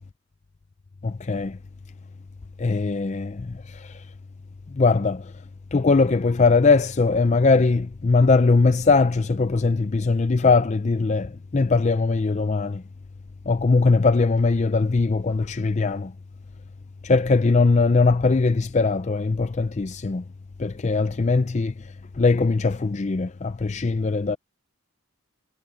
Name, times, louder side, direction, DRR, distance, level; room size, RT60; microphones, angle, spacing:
voice 1, 1.0-1.6 2.6-4.0 4.7-5.3 5.7-12.8 13.5-16.1 17.0-20.2 20.6-21.7 22.1-24.4, left 4 dB, 35° left, 0.4 m, -21 dB
head